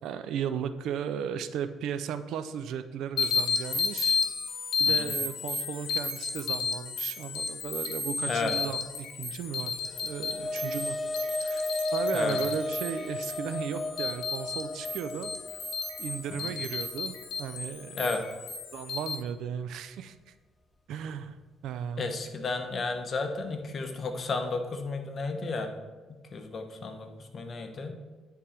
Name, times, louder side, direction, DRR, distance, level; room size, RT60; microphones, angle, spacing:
voice 1, 0.0-4.2 4.8-9.7 10.0-11.0 11.4-15.6 16.0-17.1 17.4-18.0 18.7-20.3 20.9-21.4 21.6-22.1, right 8 dB, 75° right, 11 dB, 0.4 m, -36 dB
sound 1, 3.2-19.1, left 5 dB, 70° left, 0.9 m, -33 dB
sound 2, 9.7-18.3, left 2 dB, 20° left, 0.4 m, -35 dB
voice 2, 22.0-25.7 26.1-27.1 27.3-27.9, left 3 dB, 40° left, 5 dB, 0.9 m, -32 dB
9.5 x 3.8 x 4.3 m, 1.3 s
cardioid pair, 105°, 0 cm